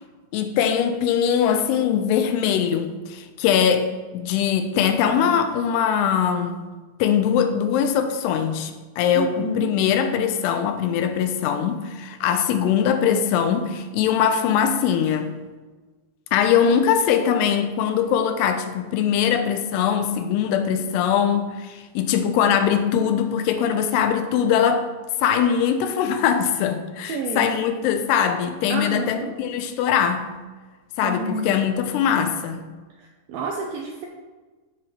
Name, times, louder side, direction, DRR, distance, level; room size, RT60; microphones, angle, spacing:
voice 1, 0.3-6.6 7.0-15.3 16.3-24.9 25.2-30.3 31.0-32.6, left 8 dB, 80° left, 7 dB, 2.6 m, -21 dB
voice 2, 9.1-9.7 14.5-14.6 27.0-27.5 28.7-29.3 31.0-31.5 33.3-34.1, right 2 dB, 90° right, 0 dB, 2.0 m, -29 dB
14.0 x 4.8 x 3.0 m, 1.3 s
omnidirectional pair, 5.0 m